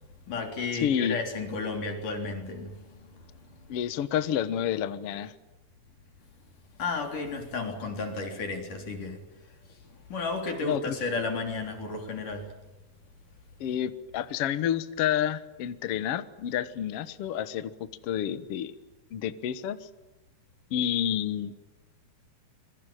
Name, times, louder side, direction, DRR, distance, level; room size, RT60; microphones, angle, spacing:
voice 1, 0.3-3.8 6.8-9.2 10.1-12.5, left 3 dB, 55° left, 3 dB, 4.9 m, -33 dB
voice 2, 0.8-1.2 3.7-5.3 10.6-10.9 13.6-18.7 19.1-19.9 20.7-21.5, left 10 dB, 85° left, 12 dB, 1.3 m, -29 dB
26.0 x 23.5 x 9.2 m, 1.0 s
omnidirectional pair, 4.6 m